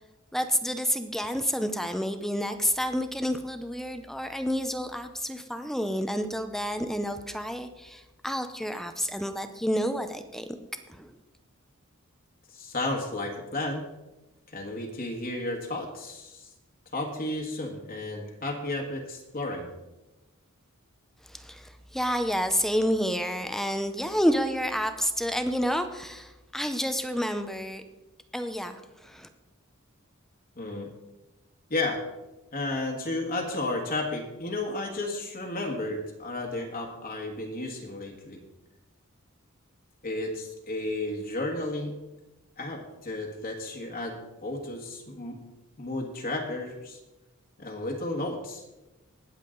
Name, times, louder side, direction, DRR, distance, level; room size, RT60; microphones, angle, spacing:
voice 1, 0.3-10.6 10.9-11.1 21.2-27.8 28.3-29.3, equal, ahead, 8 dB, 0.6 m, -29 dB
voice 2, 12.5-13.9 14.5-16.5 16.9-19.7 30.6-30.9 31.7-32.0 32.5-38.4 40.0-41.9 42.6-45.4 45.8-47.0 47.6-48.6, left 2 dB, 45° left, 1 dB, 1.5 m, -33 dB
20.0 x 7.3 x 3.9 m, 1.0 s
head